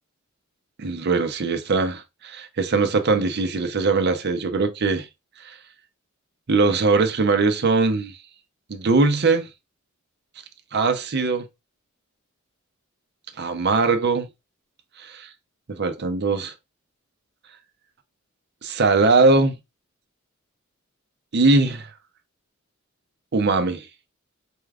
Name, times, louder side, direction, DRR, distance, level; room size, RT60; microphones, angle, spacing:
voice 1, 0.8-5.1 5.4-5.6 6.5-8.1 8.7-9.5 10.7-11.5 13.4-14.3 15.0-15.3 15.7-16.5 18.6-19.6 21.3-21.9 23.3-23.9, right 3 dB, 55° right, 0.6 m, -21 dB
4.5 x 2.4 x 3.3 m
head